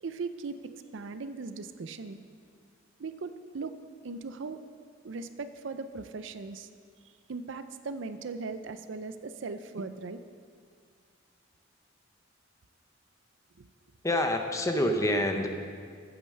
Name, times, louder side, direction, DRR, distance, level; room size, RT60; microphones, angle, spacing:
voice 1, 0.0-2.2 3.0-3.7 4.0-4.6 5.0-6.7 7.3-10.2 13.6-13.7, right 4 dB, 70° right, 10 dB, 0.5 m, -38 dB
voice 2, 14.0-15.5, left 1 dB, 15° left, 5 dB, 0.8 m, -27 dB
8.8 x 8.6 x 6.5 m, 2.1 s
head